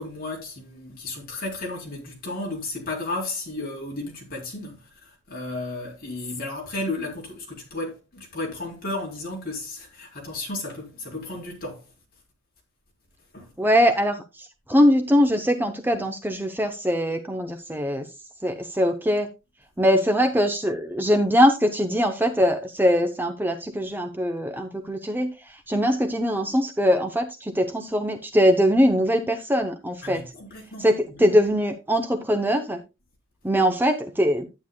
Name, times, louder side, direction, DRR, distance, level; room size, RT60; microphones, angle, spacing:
voice 1, 0.0-11.8 13.3-13.5 30.0-30.9 31.2-31.3, left 2 dB, 45° left, 3.8 m, -33 dB
voice 2, 13.6-18.1 18.4-19.3 19.8-30.2 30.8-32.8 33.4-34.5, equal, 10° right, 0.7 m, -22 dB
11.5 x 9.1 x 2.2 m
head